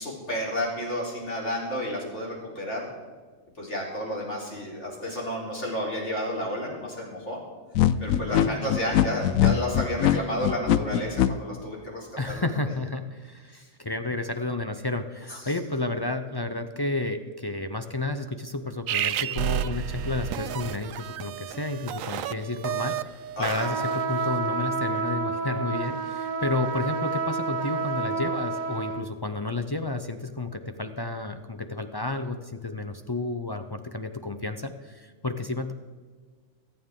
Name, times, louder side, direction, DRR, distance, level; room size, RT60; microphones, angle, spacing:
voice 1, 0.0-2.9 3.6-7.4 8.0-12.4 13.5-13.6 15.3-15.5 23.4-23.7, equal, 60° left, -4 dB, 4.0 m, -31 dB
sound 1, 7.7-11.3, left 11 dB, 85° left, 1.0 m, -21 dB
voice 2, 8.3-8.6 12.2-23.0 23.4-35.7, left 2 dB, 35° left, 7 dB, 0.3 m, -31 dB
sound 2, 18.9-24.3, right 11 dB, 80° right, 1.0 m, -31 dB
sound 3, 23.6-29.0, right 5 dB, 45° right, 0.8 m, -29 dB
24.0 x 9.3 x 3.7 m, 1.5 s
omnidirectional pair, 1.4 m